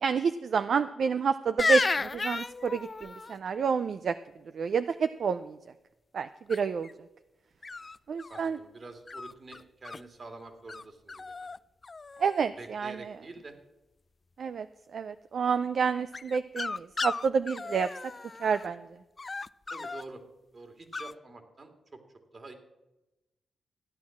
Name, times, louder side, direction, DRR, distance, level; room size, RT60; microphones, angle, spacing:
voice 1, 0.0-4.1 4.5-5.6 6.1-6.9 8.1-8.6 12.2-13.1 14.4-14.7 14.9-17.9 18.4-18.9, right 6 dB, 65° right, 11 dB, 0.5 m, -29 dB
sound 1, 1.6-3.3 6.5-6.9 7.6-8.5 9.1-10.0 10.7-10.8 11.1-11.6 11.8-12.4 16.1-18.6 19.2-20.0 20.9-21.1, left 3 dB, 35° left, 0.4 m, -33 dB
voice 2, 8.3-11.5 12.6-13.5 19.7-20.2 20.5-22.0 22.3-22.5, right 3 dB, 45° right, 6 dB, 2.5 m, -47 dB
14.0 x 9.6 x 7.3 m, 0.99 s
cardioid pair, 60°, 0 cm